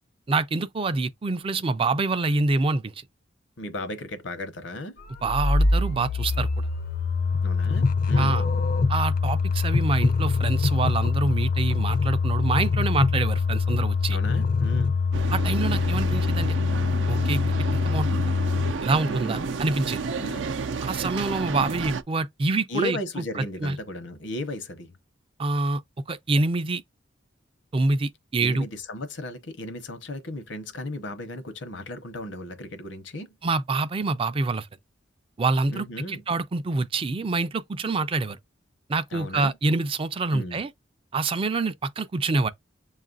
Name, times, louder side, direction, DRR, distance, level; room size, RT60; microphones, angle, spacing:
voice 1, 0.3-2.9 5.2-6.5 8.2-8.4 8.9-14.2 15.3-16.5 17.1-17.4 17.7-18.2 18.8-20.0 20.8-23.0 23.6-23.8 25.4-25.8 26.1-26.8 27.7-28.7 33.4-34.7 35.4-38.4 38.9-40.7 41.1-42.5, right 3 dB, 30° right, 0.4 m, -26 dB
voice 2, 3.6-5.0 7.4-8.4 14.1-15.0 19.1-19.5 20.2-20.5 22.7-24.9 28.4-33.3 35.7-36.2 39.1-39.5 40.3-40.6, left 1 dB, 75° left, 0.9 m, -35 dB
sound 1, 5.1-18.7, left 4 dB, 45° left, 0.5 m, -24 dB
sound 2, 15.1-22.0, right 4 dB, 80° right, 0.5 m, -31 dB
7.2 x 2.4 x 2.4 m
head